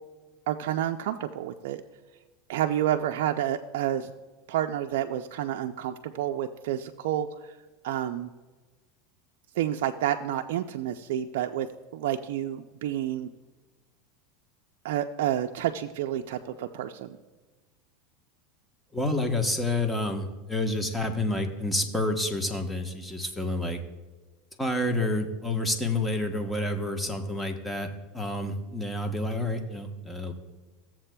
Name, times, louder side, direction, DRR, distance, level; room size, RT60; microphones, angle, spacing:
voice 1, 0.5-1.8 2.5-4.1 4.5-7.5 7.8-8.3 9.6-11.7 11.9-13.3 14.8-17.1, right 11 dB, 75° right, 5 dB, 0.4 m, -29 dB
voice 2, 18.9-23.8 24.6-27.9 28.1-30.3, left 2 dB, 10° left, 4 dB, 1.0 m, -29 dB
15.0 x 7.3 x 2.2 m, 1.3 s
supercardioid pair, 125°, 0 cm